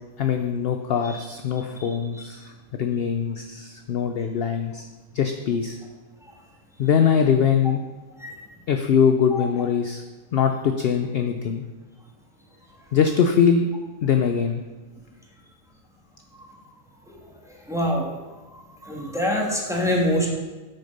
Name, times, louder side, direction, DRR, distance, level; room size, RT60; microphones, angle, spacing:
voice 1, 0.2-2.5 2.8-4.9 5.1-5.8 6.8-7.8 8.7-10.0 10.3-11.6 12.9-13.7 14.0-14.6, left 7 dB, 60° left, 6 dB, 0.7 m, -22 dB
voice 2, 17.7-18.1 18.5-20.3, equal, ahead, -2 dB, 1.5 m, -25 dB
8.6 x 6.5 x 5.3 m, 1.3 s
omnidirectional pair, 1.4 m